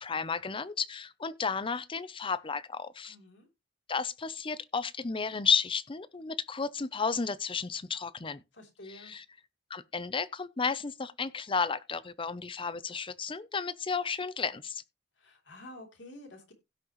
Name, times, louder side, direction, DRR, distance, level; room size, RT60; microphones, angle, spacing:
voice 1, 0.0-3.2 3.9-8.4 8.9-9.2 9.7-14.8, left 5 dB, 30° left, 0.6 m, -33 dB
voice 2, 3.1-3.5 8.5-9.1 15.2-16.5, left 1 dB, 70° left, 3.4 m, -49 dB
16.5 x 6.3 x 3.1 m
head